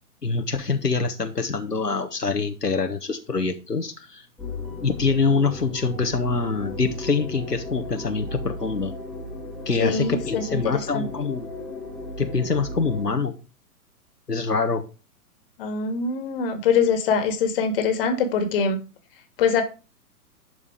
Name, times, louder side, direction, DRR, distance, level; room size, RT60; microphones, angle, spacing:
voice 1, 0.2-4.3 4.8-8.9 9.7-11.5 12.2-13.3 14.3-14.9, left 4 dB, 85° left, 6 dB, 1.2 m, -25 dB
sound 1, 4.4-13.1, left 1 dB, ahead, 2.1 m, -35 dB
voice 2, 9.8-11.0 15.6-18.8 19.4-19.6, left 5 dB, 35° left, 7 dB, 2.0 m, -23 dB
11.5 x 5.0 x 5.0 m, 0.32 s
figure-of-eight pair, 120°, 46 cm